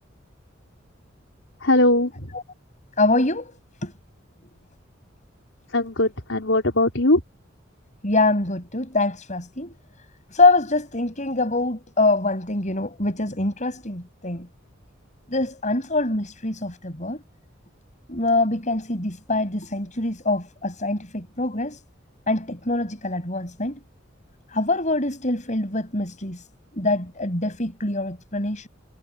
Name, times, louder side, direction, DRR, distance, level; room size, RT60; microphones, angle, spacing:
voice 1, 1.6-2.3 5.7-7.2, left 1 dB, 75° left, 4.9 m, -20 dB
voice 2, 3.0-3.5 3.8-3.9 8.0-9.7 10.3-14.5 15.3-17.2 18.1-21.8 22.3-23.8 24.5-26.4 26.7-28.7, left 2 dB, 40° left, 7.6 m, -24 dB
head